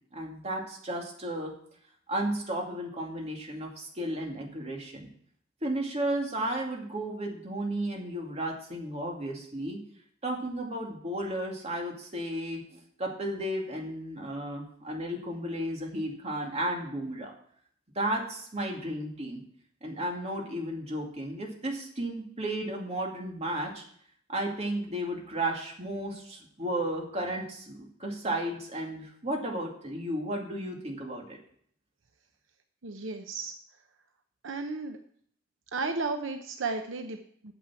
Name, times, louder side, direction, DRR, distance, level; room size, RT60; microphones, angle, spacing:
voice 1, 0.1-1.5 2.1-5.1 5.6-9.8 10.2-17.3 18.0-19.4 19.8-23.8 24.3-31.4, right 1 dB, 35° right, 0 dB, 2.3 m, -33 dB
voice 2, 32.8-33.5 34.4-35.0 35.7-37.5, right 3 dB, 75° right, 6 dB, 0.8 m, -34 dB
9.2 x 7.3 x 7.5 m, 0.62 s
head